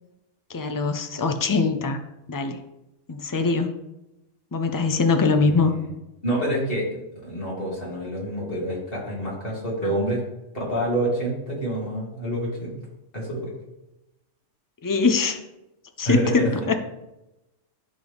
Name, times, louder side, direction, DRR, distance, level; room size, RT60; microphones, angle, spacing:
voice 1, 0.5-2.0 2.3-2.6 3.1-3.8 4.5-5.7 9.8-9.9 14.8-15.4 16.0-16.8, left 4 dB, 30° left, 6 dB, 0.3 m, -22 dB
voice 2, 5.4-5.8 6.2-10.2 10.5-12.7 13.1-13.5 16.0-16.5, right 1 dB, 50° left, -5 dB, 2.7 m, -27 dB
12.0 x 4.0 x 3.5 m, 0.95 s
omnidirectional pair, 1.3 m